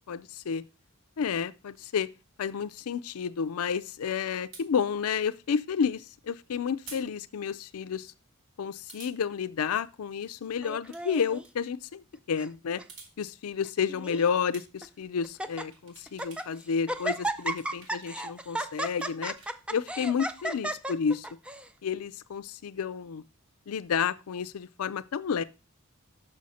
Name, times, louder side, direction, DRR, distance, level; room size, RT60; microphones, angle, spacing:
voice 1, 0.1-0.6 1.2-2.1 2.4-8.1 8.6-12.8 13.2-19.4 19.7-21.4 21.8-23.2 23.7-25.4, left 6 dB, 85° left, 0.4 m, -31 dB
sound 1, 4.5-4.7 6.9-7.1 7.4-7.5 8.9-9.2 10.7-11.0 11.3-11.5 12.7-13.1 14.2-14.9 15.4-16.5 16.8-18.3 18.7-20.2, right 4 dB, 65° right, 1.9 m, -50 dB
Laughter, 10.6-11.4 12.1-12.5 12.8-12.9 13.6-14.3 14.8-14.9 15.2-15.6 16.1-16.5 16.9-21.7, right 1 dB, 5° right, 0.3 m, -34 dB
6.3 x 6.1 x 4.1 m
head